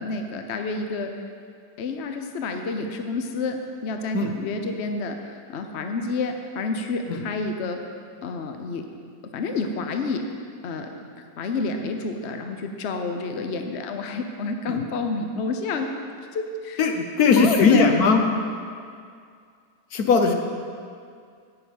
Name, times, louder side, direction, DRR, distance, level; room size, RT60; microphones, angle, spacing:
voice 1, 0.0-1.1 1.8-7.8 8.2-8.8 9.3-10.2 10.6-10.9 11.2-15.9 16.2-16.8 17.4-17.9, left 3 dB, 50° left, 5 dB, 0.9 m, -29 dB
voice 2, 16.8-18.2 19.9-20.3, left 4 dB, 65° left, 4 dB, 1.4 m, -19 dB
9.7 x 7.0 x 8.4 m, 2.2 s
omnidirectional pair, 1.8 m